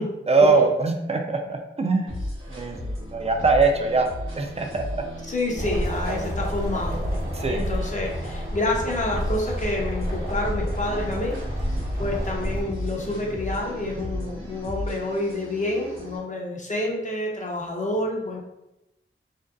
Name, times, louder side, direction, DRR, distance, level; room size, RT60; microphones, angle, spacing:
voice 1, 0.3-2.1 2.5-4.1 4.3-5.0 7.3-7.9, right 3 dB, 30° right, 3 dB, 0.4 m, -22 dB
sound 1, 2.1-16.2, left 1 dB, 75° right, 0.8 m, -35 dB
voice 2, 5.3-7.1 7.5-11.4 12.0-18.4, left 1 dB, 35° left, -1 dB, 0.6 m, -28 dB
sound 2, 5.5-12.6, equal, 45° right, 0.9 m, -30 dB
2.6 x 2.1 x 2.3 m, 0.91 s
wide cardioid pair, 45°, 21 cm